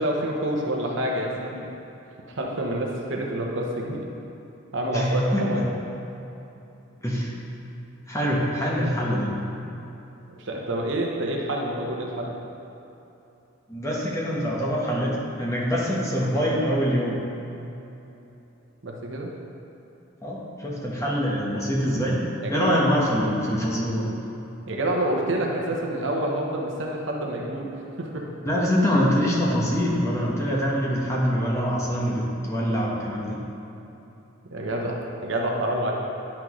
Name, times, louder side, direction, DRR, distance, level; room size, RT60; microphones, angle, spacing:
voice 1, 0.0-1.6 2.3-4.1 4.7-5.6 10.3-12.3 18.8-19.3 22.4-22.6 24.7-28.2 34.5-35.0 35.2-35.9, right 1 dB, 60° right, -1 dB, 0.9 m, -27 dB
voice 2, 4.9-5.6 7.0-7.3 8.1-9.3 13.7-17.2 20.2-22.2 22.5-24.1 28.4-33.4, equal, 15° left, -5 dB, 1.0 m, -24 dB
9.9 x 5.9 x 3.1 m, 3.0 s
head